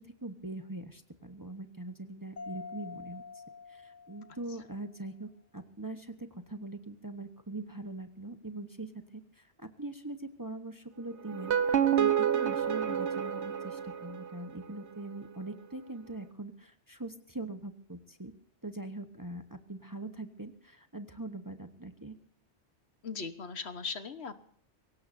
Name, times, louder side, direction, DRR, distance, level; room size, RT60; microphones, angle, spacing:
voice 1, 0.0-3.4 3.7-18.3 18.6-22.2, right 2 dB, 20° right, 8 dB, 1.0 m, -42 dB
Mallet percussion, 2.4-4.9, left 5 dB, 40° left, 1.4 m, -46 dB
sound 1, 11.3-14.4, right 9 dB, 70° right, 1.2 m, -28 dB
voice 2, 23.0-24.4, left 5 dB, 65° left, 10 dB, 1.4 m, -39 dB
23.5 x 17.5 x 2.7 m, 0.63 s
omnidirectional pair, 1.2 m